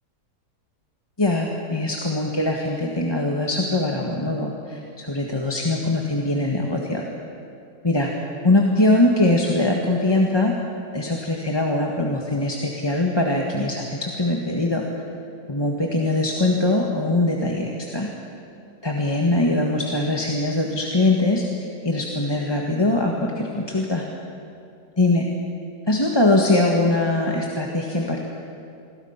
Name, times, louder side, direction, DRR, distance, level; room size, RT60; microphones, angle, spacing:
voice 1, 1.2-7.0 7.8-8.1 8.4-10.5 10.9-14.8 15.5-18.1 18.8-21.4 21.8-24.0 25.0-25.3 25.9-28.2, left 2 dB, 15° left, -1 dB, 1.6 m, -22 dB
28.5 x 21.5 x 5.9 m, 2.5 s
omnidirectional pair, 1.8 m